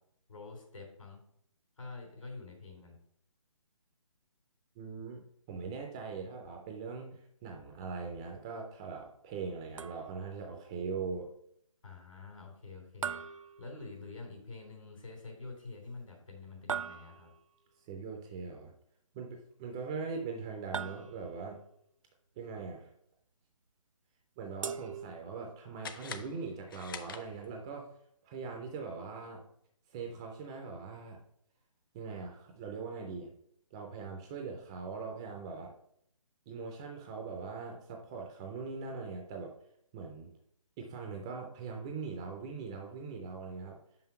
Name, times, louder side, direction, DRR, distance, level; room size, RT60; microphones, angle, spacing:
voice 1, 0.3-1.2 1.8-3.0 11.8-13.2 13.6-17.3, left 3 dB, 70° left, 2 dB, 3.3 m, -47 dB
voice 2, 4.8-11.3 17.9-18.7 19.1-21.6 22.4-22.9 24.4-27.8 28.2-29.4 29.9-31.2 31.9-33.3 33.7-35.7 36.5-39.5 39.9-40.3 40.8-43.8, right 5 dB, 10° right, 2 dB, 0.3 m, -41 dB
sound 1, 9.8-10.4 13.0-14.3 16.7-17.6 20.7-21.6 24.6-25.6, right 7 dB, 70° right, 0.6 m, -41 dB
sound 2, 25.8-27.7, left 7 dB, 40° left, 0.6 m, -46 dB
5.7 x 5.4 x 5.7 m, 0.70 s
hypercardioid pair, 155°, 17 cm